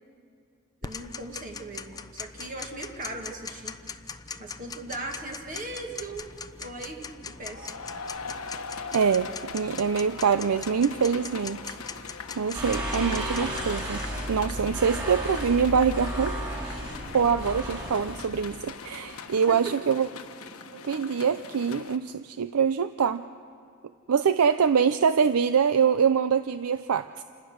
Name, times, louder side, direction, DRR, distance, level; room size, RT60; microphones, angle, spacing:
Tick-tock, 0.8-14.0, left 5 dB, 15° left, 0.5 m, -41 dB
voice 1, 0.8-3.8 4.4-6.3 6.6-7.7 19.5-19.8, right 2 dB, 40° right, 1 dB, 1.9 m, -38 dB
sound 1, 6.0-22.0, left 5 dB, 85° left, 1.2 m, -41 dB
voice 2, 8.9-12.0 12.4-16.4 17.1-20.1 20.7-23.2 24.1-27.2, right 6 dB, 90° right, 12 dB, 0.5 m, -24 dB
sound 2, 12.5-18.3, right 1 dB, 20° right, 4.5 m, -33 dB
28.0 x 17.5 x 6.5 m, 2.5 s
head